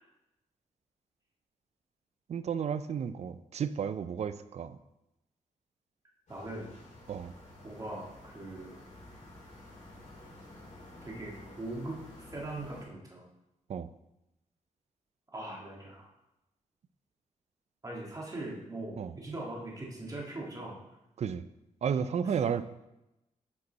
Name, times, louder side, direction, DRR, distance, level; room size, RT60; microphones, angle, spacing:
voice 1, 2.3-4.8 7.1-7.3 13.7-13.9 19.0-19.1 21.2-21.4 21.8-22.6, right 7 dB, 55° right, 13 dB, 0.4 m, -32 dB
sound 1, 6.3-12.8, left 1 dB, 70° left, 3.0 m, -51 dB
voice 2, 6.3-6.8 7.6-8.8 11.0-13.2 15.3-16.1 17.8-20.8 22.3-22.5, right 2 dB, 25° right, -3 dB, 2.0 m, -41 dB
8.2 x 5.4 x 4.1 m, 0.91 s
wide cardioid pair, 125°, 13 cm